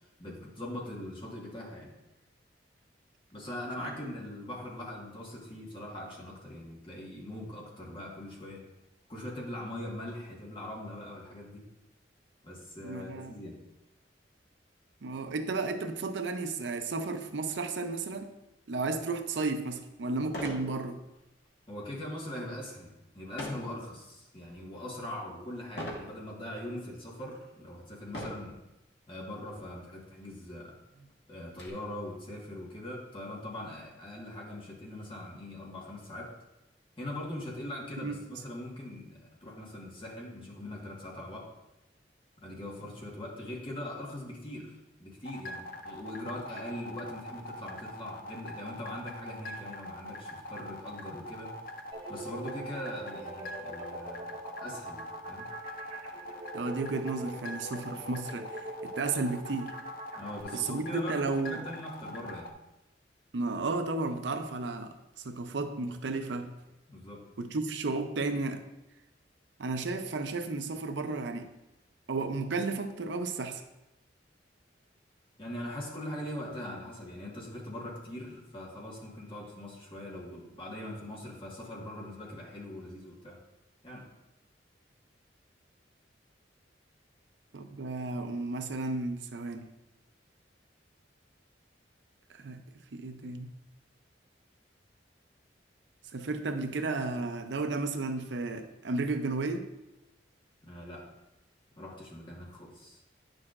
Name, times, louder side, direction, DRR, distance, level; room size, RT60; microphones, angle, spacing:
voice 1, 0.2-1.9 3.3-8.6 9.1-11.6 12.4-13.6 21.7-28.6 29.1-30.8 31.3-36.3 37.0-41.5 42.4-44.7 45.0-51.5 52.1-55.5 60.1-62.5 66.9-67.2 75.4-83.4 83.8-84.0 100.6-101.1 101.7-103.0, left 1 dB, 30° left, -2 dB, 1.5 m, -41 dB
voice 2, 12.8-13.3 15.0-18.3 18.7-21.0 38.0-38.4 56.5-59.7 60.5-61.6 63.3-64.9 65.2-66.5 67.4-68.6 69.6-71.5 72.1-73.6 87.5-89.7 92.3-92.6 92.9-93.5 96.1-99.7, right 3 dB, 75° right, 8 dB, 0.6 m, -33 dB
sound 1, 19.3-19.4 20.3-20.7 21.1-21.5 23.4-23.7 24.3-24.8 25.8-26.1 26.9-27.0 28.1-28.5 29.6-29.7 30.0-30.1 30.6-31.7, left 1 dB, 70° left, 1.5 m, -39 dB
sound 2, 45.2-62.5, left 1 dB, 50° left, 0.5 m, -43 dB
sound 3, 51.9-60.4, right 2 dB, 35° right, 1.2 m, -43 dB
9.6 x 6.3 x 2.5 m, 0.93 s
head